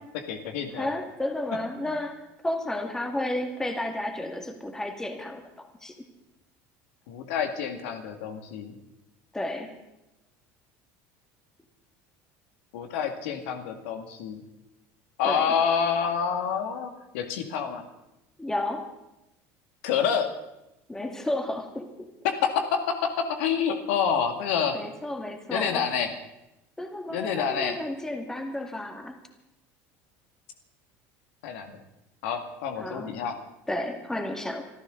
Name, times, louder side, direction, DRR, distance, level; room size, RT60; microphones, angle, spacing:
voice 1, 0.1-0.9 1.8-1.9 7.1-8.8 12.7-14.5 15.2-17.8 19.8-20.3 22.2-24.8 25.5-26.1 27.1-27.8 31.4-31.8 32.2-33.4, left 7 dB, 85° left, 6 dB, 2.0 m, -28 dB
voice 2, 0.7-6.0 9.3-9.7 15.2-15.5 18.4-18.9 20.9-22.1 24.7-25.8 26.8-29.1 32.8-33.1 33.7-34.6, left 1 dB, 10° left, 4 dB, 2.0 m, -32 dB
26.0 x 13.5 x 3.9 m, 0.93 s
cardioid pair, 135°, 7 cm